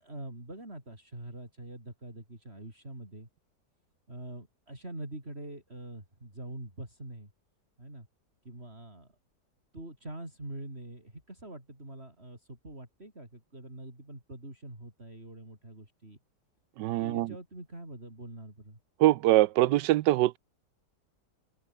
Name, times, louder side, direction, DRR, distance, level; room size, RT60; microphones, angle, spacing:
voice 1, 0.0-3.3 4.1-7.3 7.8-8.1 8.4-9.1 9.7-16.2 17.0-18.8, right 1 dB, 35° right, 7.2 m, -44 dB
voice 2, 16.8-17.3 19.0-20.4, right 15 dB, 85° right, 1.3 m, -23 dB
open air
omnidirectional pair, 1.8 m